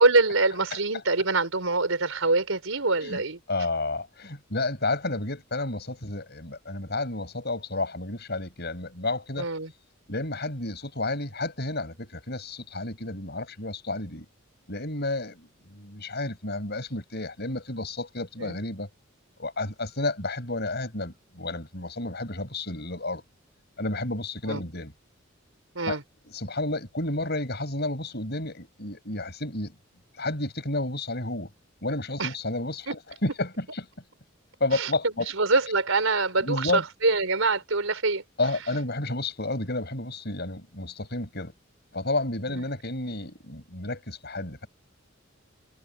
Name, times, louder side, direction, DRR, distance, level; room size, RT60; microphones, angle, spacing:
voice 1, 0.0-3.4 9.4-9.7 18.4-18.6 24.5-24.6 25.7-26.0 32.2-32.3 32.9-33.0 34.7-34.9 35.3-38.2 42.5-42.6, right 3 dB, 85° right, 4.2 m, -24 dB
voice 2, 3.5-9.5 10.1-14.3 14.7-18.9 19.4-23.2 23.8-24.9 25.9-26.0 26.3-29.7 30.2-31.5 31.8-33.6 34.6-35.3 36.4-36.8 38.4-41.5 41.9-44.7, left 2 dB, 55° left, 7.9 m, -31 dB
head